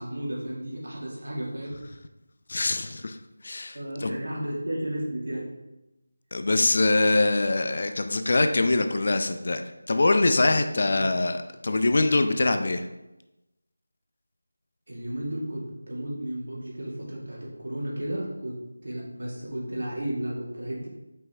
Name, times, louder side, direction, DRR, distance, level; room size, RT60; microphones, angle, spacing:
voice 1, 0.0-1.7 3.7-5.5 7.4-7.5 10.8-11.2 14.9-18.6 18.8-20.9, right 1 dB, 70° right, -4 dB, 2.2 m, -33 dB
voice 2, 2.5-3.2 3.4-4.2 6.3-12.9, left 2 dB, 45° left, 7 dB, 0.4 m, -23 dB
5.4 x 5.3 x 3.4 m, 0.96 s
figure-of-eight pair, 170°, 0 cm